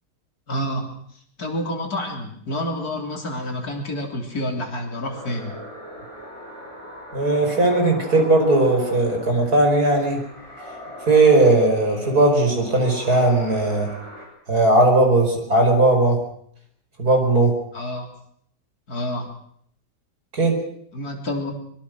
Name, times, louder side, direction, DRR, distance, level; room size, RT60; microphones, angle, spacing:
voice 1, 0.5-0.9 1.4-5.5 17.7-18.1 18.9-19.3 20.9-21.5, left 1 dB, 55° left, 3 dB, 4.1 m, -28 dB
sound 1, 5.1-14.3, equal, 15° right, 6.4 m, -38 dB
voice 2, 7.1-10.2 11.1-13.9 14.5-16.2 17.0-17.6 20.3-20.6, right 2 dB, 55° right, 3 dB, 5.6 m, -18 dB
23.5 x 23.0 x 6.4 m, 0.65 s
omnidirectional pair, 1.9 m